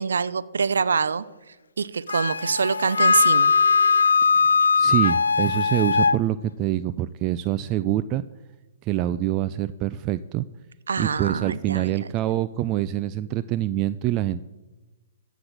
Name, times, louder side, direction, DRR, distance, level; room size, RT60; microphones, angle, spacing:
voice 1, 0.0-3.5 10.9-11.9, right 5 dB, 75° right, 15 dB, 0.6 m, -25 dB
Wind instrument woodwind instrument, 2.1-6.2, left 5 dB, 80° left, 0.4 m, -20 dB
voice 2, 4.2-8.2 8.8-10.4 11.0-14.4, right 13 dB, 30° right, 14 dB, 0.4 m, -25 dB
15.5 x 6.0 x 8.6 m, 1.1 s
figure-of-eight pair, 120°, 0 cm